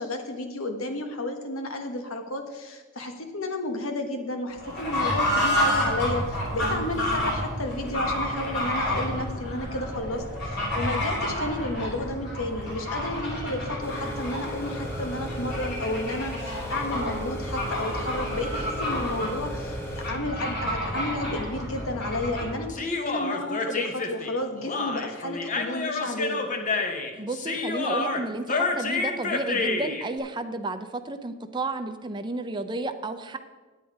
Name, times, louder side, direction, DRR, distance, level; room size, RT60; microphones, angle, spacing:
voice 1, 0.0-26.4, left 1 dB, 90° left, 5 dB, 1.3 m, -32 dB
Fowl / Bird, 4.6-22.6, equal, 55° left, 3.6 m, -30 dB
sound 1, 13.8-20.1, equal, 10° left, 1.1 m, -38 dB
Human voice, 22.7-30.1, left 3 dB, 40° left, 0.8 m, -29 dB
voice 2, 27.2-33.4, right 2 dB, 20° right, 7 dB, 0.5 m, -32 dB
9.2 x 8.8 x 4.8 m, 1.3 s
head